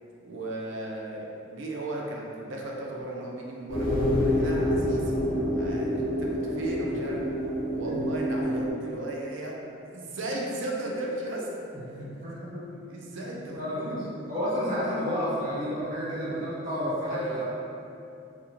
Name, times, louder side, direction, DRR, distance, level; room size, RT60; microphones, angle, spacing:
voice 1, 0.2-5.2 5.5-7.2 7.7-9.6 9.8-11.5 11.9-12.1 12.9-14.0 17.1-17.4, right 1 dB, 65° right, -2 dB, 0.4 m, -35 dB
sound 1, 3.7-8.7, equal, 65° left, 0.8 m, -27 dB
voice 2, 11.7-12.7 13.1-17.4, equal, 40° right, -13 dB, 1.0 m, -31 dB
2.4 x 2.3 x 2.9 m, 2.7 s
head